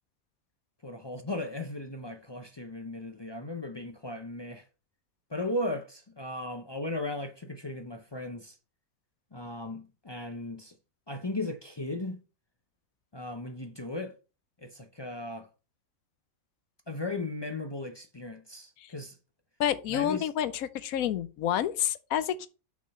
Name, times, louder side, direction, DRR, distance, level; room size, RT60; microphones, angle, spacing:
voice 1, 0.8-4.7 5.3-8.6 9.3-10.7 11.1-12.2 13.1-14.2 14.6-15.5 16.9-19.2 19.9-20.3, left 2 dB, 45° left, 0.3 m, -36 dB
voice 2, 19.6-22.5, left 10 dB, 85° left, 1.1 m, -29 dB
5.9 x 4.2 x 5.8 m
omnidirectional pair, 1.5 m